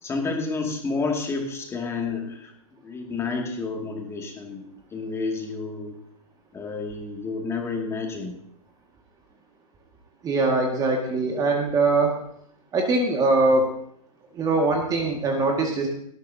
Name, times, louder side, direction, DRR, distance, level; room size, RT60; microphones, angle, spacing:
voice 1, 0.0-2.5 2.8-4.7 4.9-6.0 6.5-8.4, left 4 dB, 15° left, 1 dB, 2.3 m, -30 dB
voice 2, 10.2-12.2 12.7-13.7 14.3-15.9, right 3 dB, 20° right, 1 dB, 1.9 m, -22 dB
18.0 x 13.5 x 2.8 m, 0.70 s
figure-of-eight pair, 120°, 19 cm